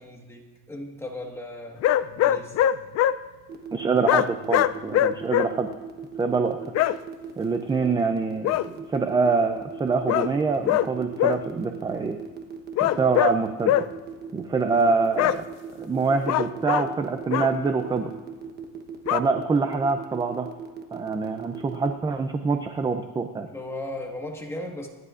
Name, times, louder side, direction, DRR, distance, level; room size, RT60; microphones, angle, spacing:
voice 1, 0.0-1.8 2.1-2.6 23.5-24.9, left 1 dB, 10° left, 1 dB, 1.5 m, -36 dB
sound 1, 1.8-3.1 4.1-5.5 6.7-6.9 8.4-8.7 10.1-10.3 10.6-10.9 11.2-11.4 12.8-13.3 13.6-13.9 15.2-15.4 16.2-16.9 17.3-17.5 19.1-19.2, left 12 dB, 50° left, 0.4 m, -21 dB
sound 2, 3.5-21.9, right 7 dB, 30° right, 1.1 m, -38 dB
voice 2, 3.7-5.7 6.2-6.6 7.4-12.2 12.8-13.7 14.3-15.5 15.7-18.1 19.1-20.5 20.9-23.5, right 4 dB, 15° right, 6 dB, 0.4 m, -25 dB
25.5 x 11.0 x 2.5 m, 1.3 s
cardioid pair, 160°, 34 cm